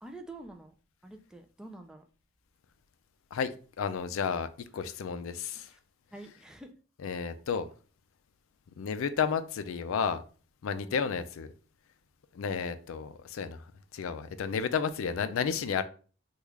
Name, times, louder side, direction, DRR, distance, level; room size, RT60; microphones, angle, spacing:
voice 1, 0.0-0.7 1.0-2.0 5.6-5.8 6.1-6.8 10.8-11.0, right 2 dB, 5° right, 0.3 m, -47 dB
voice 2, 3.8-5.7 7.0-7.7 8.8-10.2 10.6-11.5 12.3-13.6 13.9-15.8, left 6 dB, 70° left, 0.4 m, -32 dB
3.1 x 2.3 x 3.5 m
head